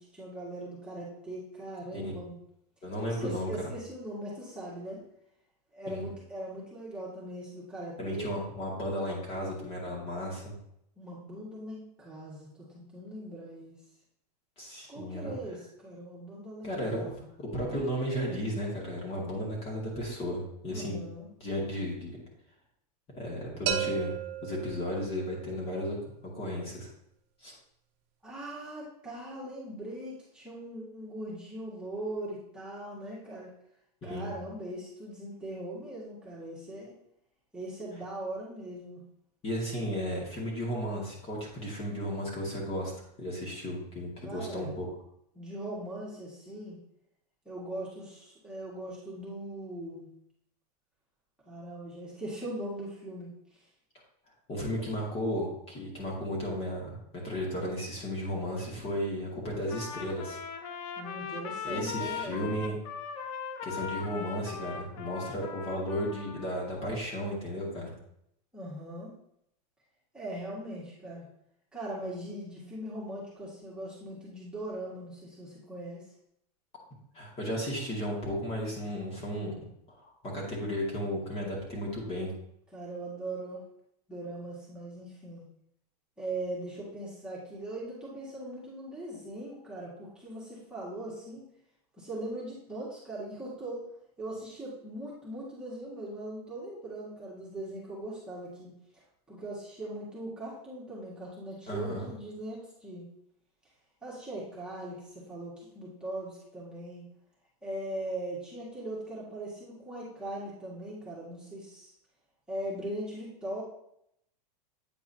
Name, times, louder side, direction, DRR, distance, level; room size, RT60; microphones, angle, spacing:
voice 1, 0.0-2.4 3.0-5.0 5.7-8.4 11.0-12.5 12.7-13.8 14.9-17.3 20.7-21.3 28.2-33.5 34.0-36.9 37.5-39.0 44.2-44.7 45.3-46.8 47.5-50.1 51.5-53.3 61.0-62.5 68.5-69.2 70.1-71.3 71.7-76.1 82.7-83.6 84.1-85.5 86.2-91.5 92.0-93.8 94.2-98.7 99.3-103.1 104.0-107.0 107.6-111.9 112.5-113.6, right 1 dB, 5° right, -8 dB, 1.9 m, -40 dB
voice 2, 2.8-3.5 5.9-6.0 8.0-10.6 14.6-15.4 16.6-21.0 21.4-22.2 23.2-24.1 24.4-26.0 26.2-26.9 27.4-27.5 34.0-34.3 39.4-42.9 43.2-44.9 54.5-57.0 57.2-60.4 61.6-62.8 63.6-67.9 77.1-82.3 101.7-102.1, equal, 30° left, -3 dB, 2.2 m, -34 dB
sound 1, 23.7-25.5, right 11 dB, 50° right, 0.9 m, -34 dB
Trumpet, 59.7-66.6, left 6 dB, 55° left, 0.8 m, -39 dB
8.7 x 4.6 x 2.9 m, 0.75 s
supercardioid pair, 135°, 21 cm